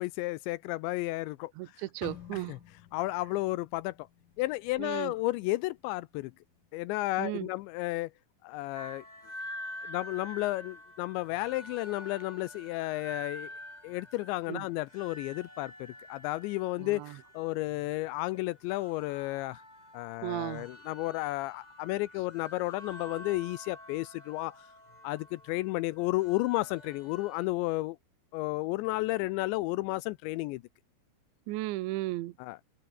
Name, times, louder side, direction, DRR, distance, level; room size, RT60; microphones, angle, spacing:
voice 1, 0.0-1.5 2.5-2.6 2.9-4.0 4.4-6.3 6.7-8.1 8.4-9.0 9.9-13.5 13.8-19.6 19.9-24.6 25.0-28.0 28.3-30.6 32.4-32.6, left 20 dB, 85° left, 2.6 m, -32 dB
voice 2, 1.6-2.6 4.8-5.1 7.2-7.5 14.5-14.6 16.8-17.2 20.2-20.7 31.5-32.3, right 18 dB, 75° right, 3.1 m, -35 dB
sound 1, 2.0-6.0 6.4-6.7 7.3-7.6, left 11 dB, 60° left, 2.4 m, -51 dB
sound 2, 8.7-27.5, left 1 dB, 10° left, 6.2 m, -48 dB
open air
omnidirectional pair, 5.8 m